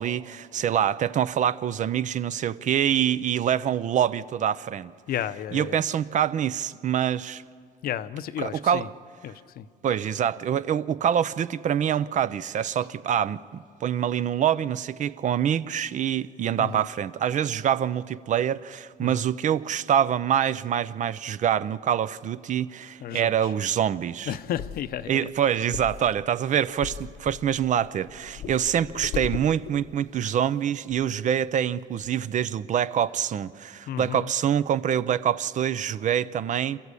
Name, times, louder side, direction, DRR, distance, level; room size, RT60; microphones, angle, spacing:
voice 1, 0.0-4.9 5.5-7.4 8.4-8.9 9.8-24.3 25.1-36.8, right 9 dB, 45° right, 0.5 m, -25 dB
voice 2, 5.1-5.8 7.8-8.9 9.2-9.7 16.6-16.9 19.0-19.2 23.0-23.5 24.3-25.3 33.9-34.3, left 10 dB, 60° left, 0.7 m, -33 dB
sound 1, 24.3-30.0 30.5-30.6 30.9-31.0, left 8 dB, 80° left, 1.2 m, -38 dB
27.0 x 14.0 x 8.3 m
cardioid pair, 110°, 17 cm